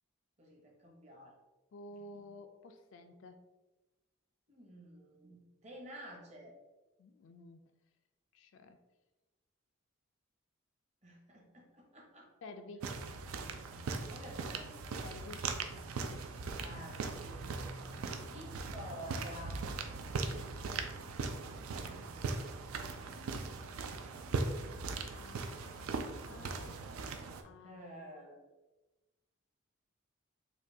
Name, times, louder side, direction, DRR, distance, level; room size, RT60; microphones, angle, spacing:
voice 1, 0.4-1.4 1.9-2.3 4.5-6.5 11.0-12.3 14.0-14.7 16.5-17.5 18.2-19.6 27.5-28.4, equal, 30° right, -1 dB, 0.7 m, -51 dB
voice 2, 1.7-3.4 7.0-7.6 8.3-8.8 12.4-12.9 15.0-15.5 17.9-18.3 20.1-20.4 25.1-26.9 27.4-27.8, left 2 dB, 65° left, 7 dB, 0.3 m, -52 dB
sound 1, 12.8-27.4, right 4 dB, 90° right, 0.4 m, -40 dB
5.0 x 2.2 x 2.6 m, 1.1 s
head